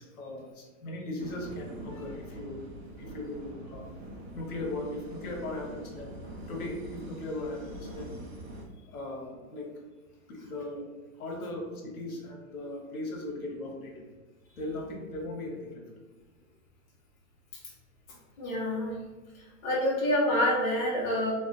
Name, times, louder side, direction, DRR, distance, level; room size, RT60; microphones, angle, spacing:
voice 1, 0.1-2.7 3.0-3.9 4.3-6.1 6.4-8.1 8.8-9.7 10.3-10.9 11.1-14.0 14.5-15.8, left 2 dB, 75° left, 0 dB, 0.9 m, -38 dB
sound 1, 1.2-8.6, right 1 dB, 45° right, 0.6 m, -44 dB
voice 2, 18.4-19.0 19.6-21.3, left 1 dB, 35° left, -6 dB, 0.6 m, -27 dB
2.4 x 2.2 x 3.7 m, 1.3 s
hypercardioid pair, 180°, 44 cm